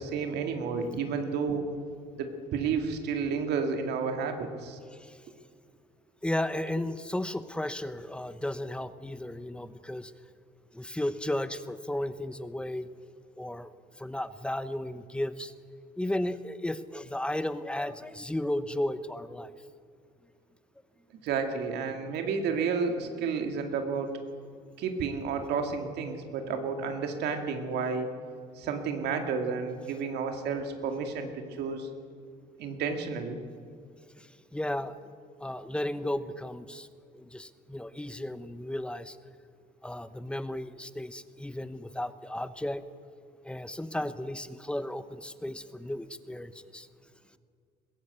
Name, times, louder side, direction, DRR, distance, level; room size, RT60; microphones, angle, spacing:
voice 1, 0.0-1.7 2.1-4.8 21.2-24.1 24.8-28.1 28.6-31.9 32.6-33.4, right 5 dB, 80° right, 5 dB, 2.2 m, -31 dB
voice 2, 6.2-10.1 10.7-12.9 13.4-15.5 16.0-19.5 34.2-34.9 35.4-36.9 37.1-39.2 39.8-42.8 43.4-46.9, left 1 dB, 5° left, 13 dB, 0.9 m, -34 dB
21.5 x 16.0 x 8.3 m, 2.2 s
cardioid pair, 110°, 17 cm